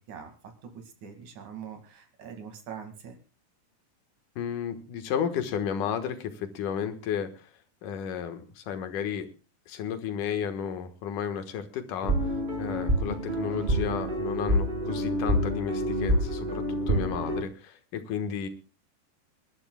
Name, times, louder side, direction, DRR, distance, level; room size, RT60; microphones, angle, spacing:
voice 1, 0.7-3.2, right 7 dB, 70° right, 6 dB, 3.4 m, -43 dB
voice 2, 4.4-7.5 7.8-9.3 9.7-12.3 12.6-18.5, left 8 dB, 90° left, 8 dB, 2.9 m, -33 dB
sound 1, 12.0-17.4, equal, 25° right, 1.4 m, -27 dB
29.0 x 11.5 x 2.3 m, 0.31 s
omnidirectional pair, 3.6 m